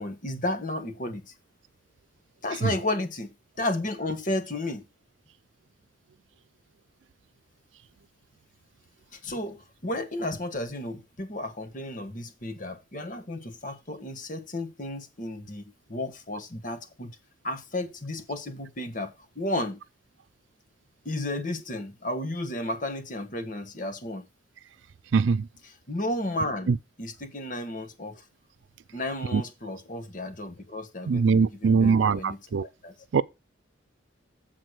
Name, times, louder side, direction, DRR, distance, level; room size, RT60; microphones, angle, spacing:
voice 1, 0.0-1.3 2.4-4.8 9.2-17.1 17.4-19.8 21.0-24.2 25.9-26.7 27.0-28.2 28.9-32.9, left 1 dB, 45° left, 1.4 m, -33 dB
voice 2, 25.1-25.5 26.7-26.8 29.3-29.4 31.1-32.7 33.1-33.2, right 5 dB, 80° right, 0.4 m, -22 dB
8.1 x 4.2 x 6.1 m
head